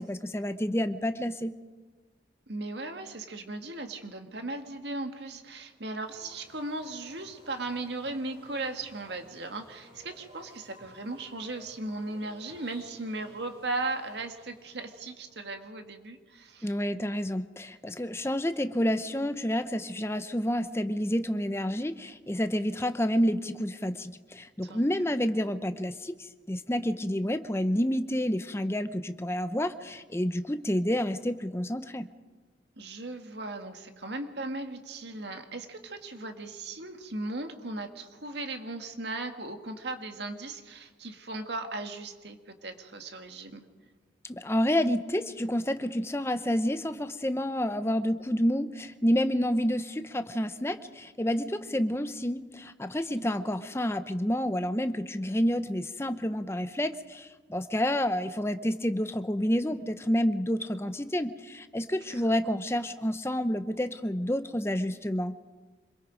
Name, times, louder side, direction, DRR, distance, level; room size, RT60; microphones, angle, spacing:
voice 1, 0.0-1.5 16.6-32.1 44.3-65.3, equal, 15° left, 10 dB, 0.8 m, -29 dB
voice 2, 2.5-16.7 24.6-25.0 32.8-43.7 53.1-53.4 62.1-62.2, right 2 dB, 70° right, 6 dB, 1.8 m, -37 dB
sound 1, 6.0-15.4, right 1 dB, 30° right, 5.8 m, -55 dB
26.0 x 22.5 x 5.2 m, 1.3 s
head